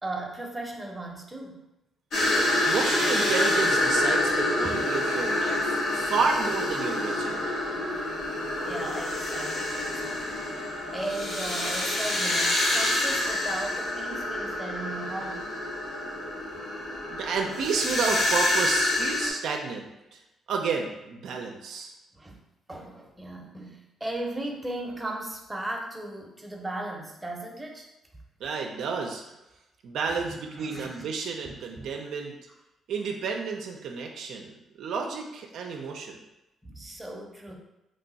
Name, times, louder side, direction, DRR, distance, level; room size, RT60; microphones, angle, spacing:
voice 1, 0.0-1.6 4.6-4.8 7.9-8.0 8.6-15.5 22.1-22.4 22.7-27.9 30.1-30.2 30.6-31.9 36.6-37.6, right 1 dB, 15° right, 0 dB, 0.7 m, -37 dB
sound 1, 2.1-19.3, left 1 dB, 75° left, 1.0 m, -27 dB
voice 2, 2.4-7.5 17.1-20.2 20.5-21.9 28.4-29.2 29.8-32.3 32.9-36.2, right 5 dB, 80° right, 2 dB, 0.4 m, -31 dB
3.1 x 2.2 x 3.9 m, 0.95 s
cardioid pair, 80°, 0 cm